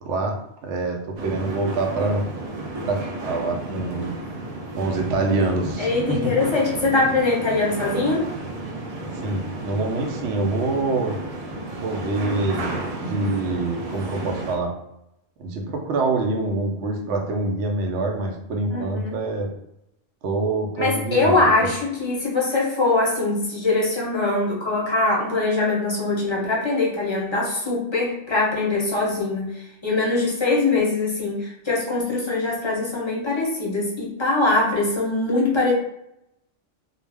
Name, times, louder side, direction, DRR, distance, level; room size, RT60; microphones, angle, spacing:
voice 1, 0.0-2.2 2.8-4.2 4.8-6.3 9.1-11.2 11.8-14.8 15.4-19.5 20.2-21.7, right 2 dB, 75° right, 1 dB, 0.9 m, -25 dB
sound 1, 1.2-14.6, right 2 dB, 55° right, 0.4 m, -32 dB
voice 2, 5.8-8.2 18.7-19.1 20.8-35.7, left 3 dB, 30° left, -4 dB, 0.5 m, -22 dB
2.4 x 2.0 x 3.3 m, 0.80 s
omnidirectional pair, 1.2 m